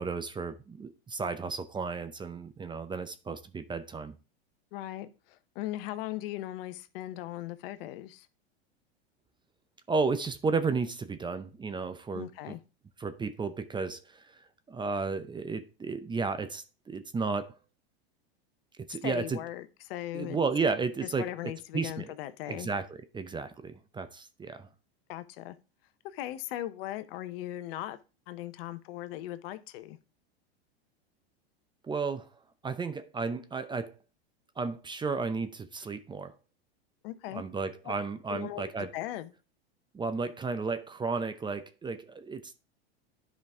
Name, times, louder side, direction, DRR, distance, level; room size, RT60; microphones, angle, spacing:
voice 1, 0.0-4.2 9.9-12.6 13.0-17.6 18.9-19.4 20.1-22.1 22.5-24.7 31.8-32.3 32.6-34.0 34.6-36.3 37.3-38.9 39.9-42.6, right 4 dB, 15° right, 0.6 m, -33 dB
voice 2, 4.7-8.3 12.1-12.6 19.0-20.4 21.2-22.7 25.1-25.5 26.1-28.0 28.3-30.0 37.0-37.4 37.8-37.9 38.3-39.3, left 14 dB, 60° left, 0.9 m, -38 dB
10.5 x 5.2 x 3.6 m
hypercardioid pair, 105°, 32 cm